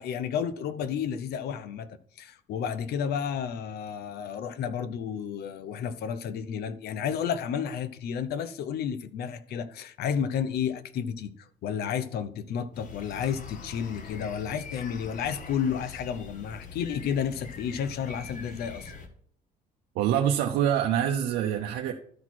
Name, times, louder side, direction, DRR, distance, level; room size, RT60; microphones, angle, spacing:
voice 1, 0.0-18.9, left 8 dB, 70° left, 0.8 m, -31 dB
sound 1, 12.7-19.1, left 4 dB, 50° left, 1.4 m, -44 dB
voice 2, 19.9-21.9, right 10 dB, 90° right, 0.8 m, -25 dB
12.5 x 4.2 x 4.5 m
cardioid pair, 110°, 17 cm